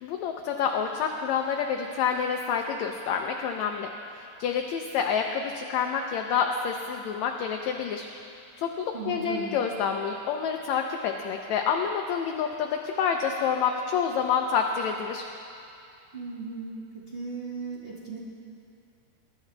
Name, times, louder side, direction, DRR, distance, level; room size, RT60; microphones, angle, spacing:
voice 1, 0.0-3.9 4.1-8.1 8.6-15.3, left 7 dB, 75° left, 3 dB, 1.8 m, -28 dB
voice 2, 8.9-9.6 16.1-18.2, right 4 dB, 30° right, -6 dB, 1.0 m, -37 dB
22.5 x 11.5 x 3.3 m, 2.5 s
omnidirectional pair, 3.5 m